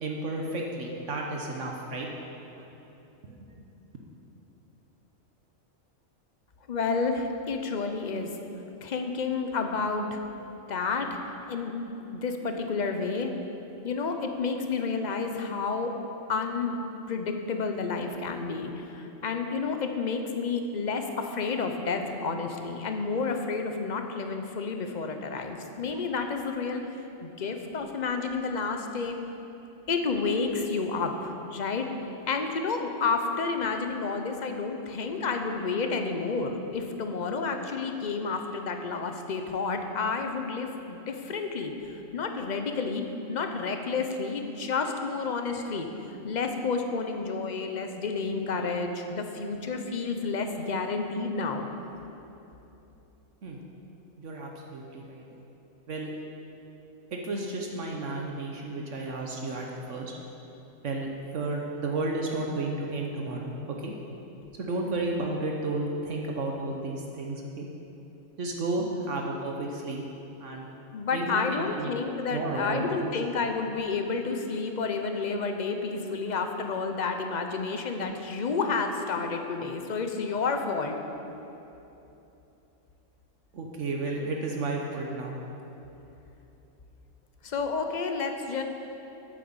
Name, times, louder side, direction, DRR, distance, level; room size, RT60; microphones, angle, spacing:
voice 1, 0.0-2.2 2.6-2.7 3.3-3.6 53.4-53.6 54.2-55.2 55.9-56.1 57.1-60.1 60.8-63.9 64.6-67.7 68.4-70.0 70.4-70.7 71.1-71.9 72.3-73.1 83.5-85.4, right 2 dB, 70° right, 0 dB, 1.3 m, -32 dB
voice 2, 6.7-8.3 8.8-10.2 10.7-11.2 11.5-11.8 12.1-13.3 13.8-15.9 16.3-16.8 17.1-26.8 27.2-29.2 29.9-31.9 32.3-43.0 43.3-45.9 46.2-51.7 68.8-68.9 70.9-80.9 87.4-88.6, left 4 dB, 40° left, 5 dB, 0.8 m, -30 dB
9.0 x 8.6 x 7.3 m, 3.0 s
omnidirectional pair, 1.3 m